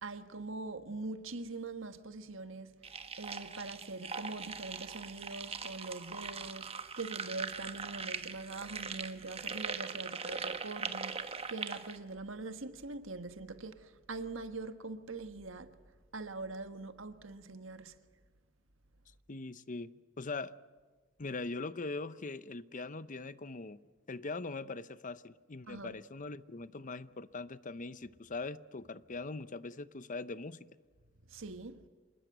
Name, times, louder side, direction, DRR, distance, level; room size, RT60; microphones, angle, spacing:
voice 1, 0.0-2.8 3.2-15.7 16.1-18.0 25.7-26.0 31.3-31.8, right 3 dB, 75° right, 1.5 m, -43 dB
sound 1, 2.8-12.0, right 5 dB, 30° right, 1.3 m, -41 dB
voice 2, 19.3-20.5 21.2-23.8 24.1-30.6, left 3 dB, 40° left, 0.8 m, -41 dB
27.0 x 20.5 x 8.0 m
head